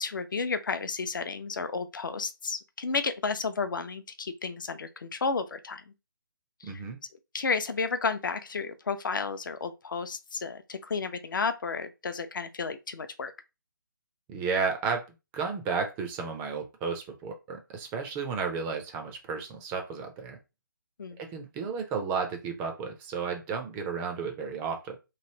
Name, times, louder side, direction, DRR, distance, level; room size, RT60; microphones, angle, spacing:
voice 1, 0.0-5.8 6.6-6.8 7.3-13.3 21.0-21.2, left 4 dB, 65° left, 0.5 m, -32 dB
voice 2, 6.6-7.0 14.3-15.1 15.3-20.4 21.2-25.0, right 5 dB, 15° right, 0.4 m, -33 dB
3.1 x 2.6 x 2.8 m
figure-of-eight pair, 150°, 11 cm